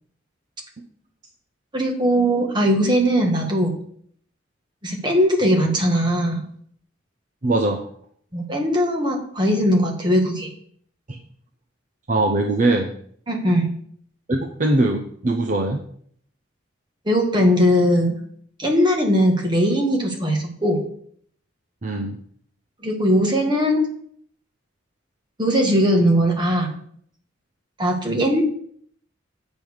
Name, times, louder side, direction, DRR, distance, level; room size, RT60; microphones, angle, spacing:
voice 1, 1.7-3.8 4.8-6.4 8.3-10.5 13.3-13.7 17.0-18.2 18.6-20.8 22.8-23.9 25.4-26.7 27.8-28.4, equal, 25° right, 1 dB, 1.6 m, -19 dB
voice 2, 7.4-7.9 11.1-11.2 12.1-12.9 14.3-15.8 21.8-22.2, right 2 dB, 40° right, 4 dB, 0.7 m, -21 dB
7.6 x 5.3 x 6.3 m, 0.62 s
head